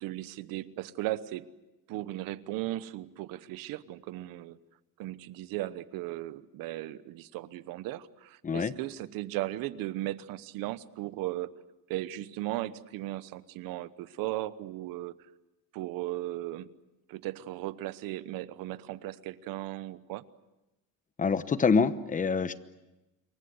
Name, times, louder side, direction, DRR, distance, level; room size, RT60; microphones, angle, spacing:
voice 1, 0.0-1.5 1.9-4.6 5.0-11.5 11.9-15.2 15.7-16.7 17.1-20.2, right 16 dB, 85° right, 16 dB, 1.1 m, -36 dB
voice 2, 21.2-22.6, left 5 dB, 25° left, 13 dB, 1.0 m, -26 dB
27.5 x 23.5 x 8.1 m, 1.0 s
cardioid pair, 140°, 33 cm